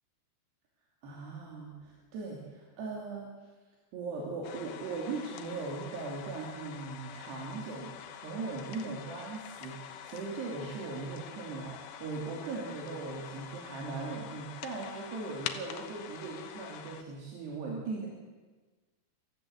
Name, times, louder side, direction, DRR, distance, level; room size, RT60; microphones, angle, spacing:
voice 1, 1.0-3.3 3.9-18.1, right 3 dB, 85° right, -3 dB, 5.1 m, -39 dB
sound 1, 4.4-17.0, left 9 dB, 75° left, 2.9 m, -45 dB
24.0 x 15.0 x 8.0 m, 1.3 s
omnidirectional pair, 4.6 m